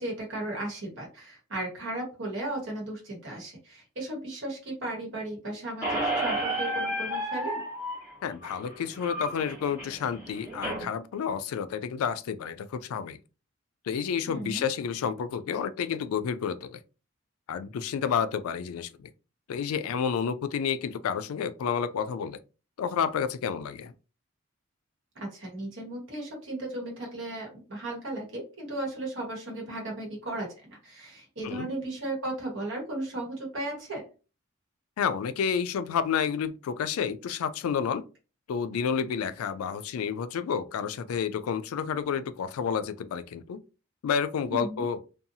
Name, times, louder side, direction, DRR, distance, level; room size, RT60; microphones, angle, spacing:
voice 1, 0.0-7.6 14.3-14.6 25.2-34.0 44.5-44.8, right 1 dB, 60° right, 1.2 m, -35 dB
Squeak, 5.8-10.8, right 1 dB, 10° right, 1.1 m, -32 dB
voice 2, 8.2-13.2 13.8-16.8 17.5-19.1 19.5-22.4 22.8-23.9 31.4-31.7 35.0-38.0 38.5-43.6 44.0-45.0, left 7 dB, 85° left, 0.3 m, -30 dB
2.6 x 2.3 x 2.7 m
head